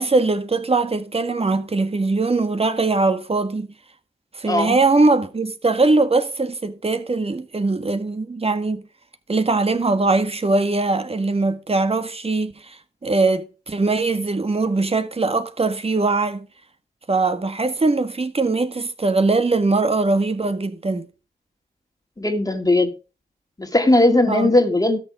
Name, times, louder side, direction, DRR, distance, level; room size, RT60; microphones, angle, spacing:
voice 1, 0.0-3.7 4.3-8.8 9.3-16.4 17.1-21.1 24.3-24.5, right 3 dB, 35° right, 1.6 m, -21 dB
voice 2, 22.2-22.9 23.6-25.0, left 2 dB, 20° left, 2.2 m, -18 dB
13.0 x 6.8 x 4.9 m
cardioid pair, 60°, 18 cm